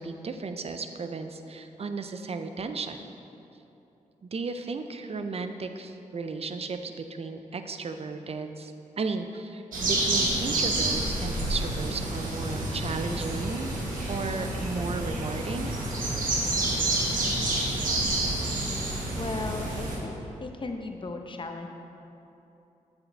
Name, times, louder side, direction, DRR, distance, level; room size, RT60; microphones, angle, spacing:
voice 1, 0.0-3.0 4.2-13.8 14.1-15.8, right 4 dB, 45° right, 7 dB, 0.6 m, -34 dB
sound 1, 9.7-20.0, right 2 dB, 80° right, 1.3 m, -29 dB
voice 2, 19.1-21.7, left 3 dB, 35° left, 4 dB, 0.8 m, -36 dB
7.8 x 7.1 x 3.4 m, 2.9 s
cardioid pair, 50°, 14 cm